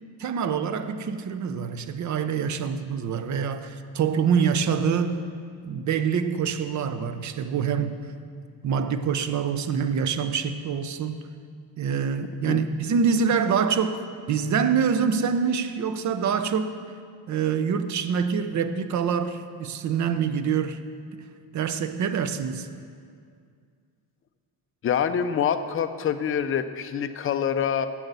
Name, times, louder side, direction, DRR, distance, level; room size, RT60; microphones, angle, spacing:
voice 1, 0.2-5.2 5.6-8.0 8.6-11.2 11.8-16.8 17.3-20.8 21.1-21.2 21.5-22.7, right 6 dB, 45° right, 10 dB, 0.5 m, -25 dB
voice 2, 24.8-27.9, left 8 dB, 35° left, 9 dB, 0.4 m, -25 dB
8.0 x 7.6 x 6.8 m, 2.2 s
cardioid pair, 160°, 41 cm